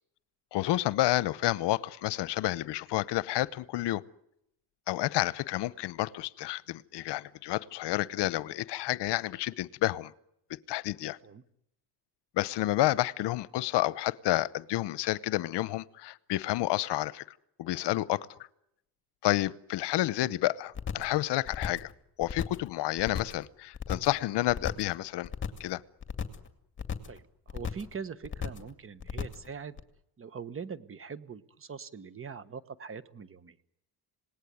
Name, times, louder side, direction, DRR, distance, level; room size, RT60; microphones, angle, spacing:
voice 1, 0.5-4.0 4.9-10.1 10.7-11.2 12.4-17.2 17.6-18.3 19.2-21.9 22.2-25.3 25.6-25.8, left 16 dB, 70° left, 19 dB, 0.9 m, -30 dB
sound 1, 20.7-21.2 21.5-21.9 22.2-22.7 23.0-23.4 23.7-24.2 24.5-24.9 25.2-25.7 26.0-26.5 26.8-27.2 27.5-27.9 28.2-28.7 29.0-29.5 29.8-29.9, left 7 dB, 25° left, 2.3 m, -35 dB
voice 2, 27.0-29.7 30.2-33.6, right 6 dB, 30° right, 15 dB, 1.3 m, -42 dB
27.0 x 19.0 x 9.5 m, 0.82 s
cardioid pair, 125°, 43 cm